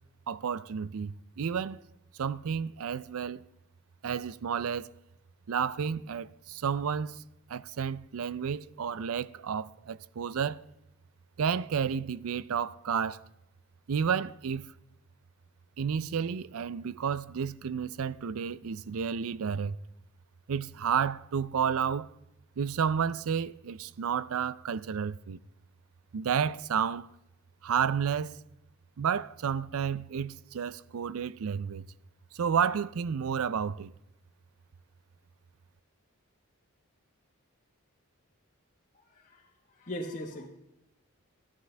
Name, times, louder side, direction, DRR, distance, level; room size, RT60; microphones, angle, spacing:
voice 1, 0.3-1.8 2.2-3.4 4.0-4.9 5.5-7.2 7.5-10.7 11.4-13.2 13.9-14.7 15.8-19.8 20.5-22.1 22.6-25.4 26.1-27.1 27.6-28.4 29.0-31.8 32.3-33.9, right 7 dB, 70° right, 0.4 m, -31 dB
voice 2, 38.9-39.4 39.7-40.5, left 1 dB, 35° left, 1.3 m, -39 dB
14.5 x 11.5 x 3.3 m
head